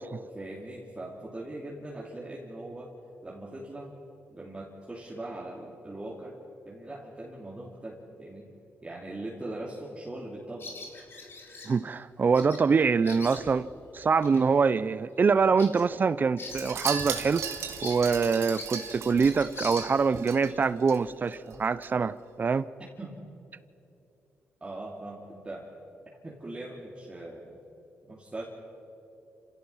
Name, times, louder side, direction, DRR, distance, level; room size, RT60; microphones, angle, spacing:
voice 1, 0.2-2.9 3.2-4.0 4.3-6.4 6.6-8.5 8.8-10.7 20.5-20.6 23.0-23.2 24.6-25.7 26.2-27.6 28.0-28.5, right 1 dB, 20° right, -4 dB, 3.0 m, -40 dB
Bird vocalization bird call bird song, 10.6-11.7 12.3-12.6 12.9-13.7 14.2-14.4 14.8-14.9 15.3-17.2 17.4-17.5 17.8-20.3, left 3 dB, 55° left, 3.5 m, -42 dB
voice 2, 11.7-13.7 13.9-17.5 17.8-22.7, right 5 dB, 40° right, 17 dB, 0.5 m, -25 dB
Wind chime, 16.5-21.0 21.3-21.6 21.8-21.9, right 7 dB, 80° right, 2.0 m, -37 dB
28.5 x 16.5 x 5.7 m, 2.8 s
cardioid pair, 80°, 5 cm